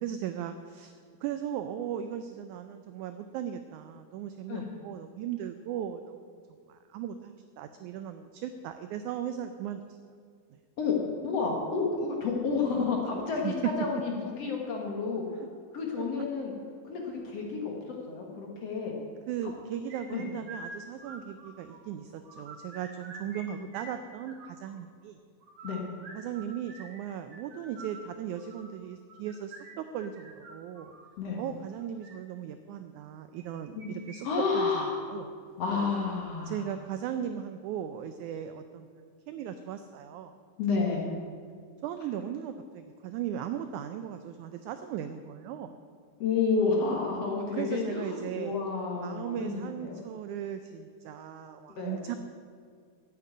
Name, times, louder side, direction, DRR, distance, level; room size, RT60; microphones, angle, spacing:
voice 1, 0.0-6.4 6.7-10.0 13.4-13.7 15.4-15.5 16.0-16.1 19.3-25.2 26.1-30.9 31.4-34.3 34.5-35.3 36.5-40.3 41.8-45.7 47.5-48.6 48.9-52.2, right 9 dB, 85° right, 9 dB, 1.7 m, -37 dB
voice 2, 11.2-15.2 15.7-16.5 16.9-17.7 18.1-18.9 20.1-20.2 23.5-23.6 25.6-25.8 31.2-31.4 33.7-33.9 34.2-35.1 35.6-36.6 40.6-41.1 46.2-50.0 51.8-52.0, left 4 dB, 55° left, 0 dB, 2.1 m, -30 dB
sound 1, 19.9-21.8 22.1-23.4 23.7-24.7 25.4-31.0 31.8-32.1 33.3-34.2 34.4-34.5 35.0-35.1 35.7-36.1, right 3 dB, 50° right, 2.6 m, -47 dB
8.6 x 8.4 x 9.3 m, 2.1 s
omnidirectional pair, 4.1 m